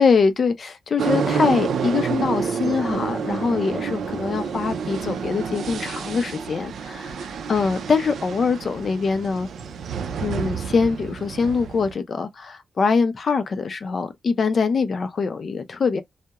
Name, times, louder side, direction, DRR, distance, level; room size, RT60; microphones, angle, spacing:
voice 1, 0.0-9.5 10.2-16.0, left 5 dB, 45° left, 0.5 m, -23 dB
sound 1, 1.0-11.9, right 6 dB, 80° right, 0.4 m, -29 dB
2.3 x 2.0 x 2.8 m
wide cardioid pair, 140°, 0 cm